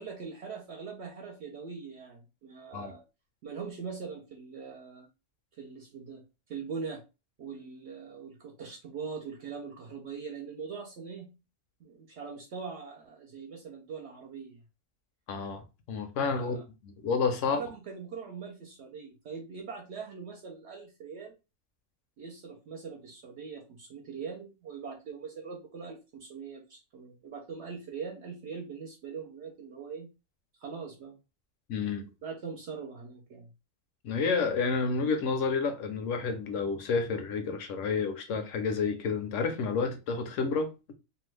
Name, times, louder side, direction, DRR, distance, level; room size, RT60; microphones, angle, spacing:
voice 1, 0.0-3.0 3.4-5.1 5.5-7.0 7.4-11.3 11.8-14.6 16.2-16.6 17.4-21.4 22.2-30.1 30.6-31.2 32.2-33.5, right 5 dB, 65° right, 0.8 m, -42 dB
voice 2, 15.3-17.6 31.7-32.1 34.0-40.7, left 5 dB, 80° left, 1.0 m, -30 dB
2.7 x 2.2 x 3.1 m
omnidirectional pair, 1.3 m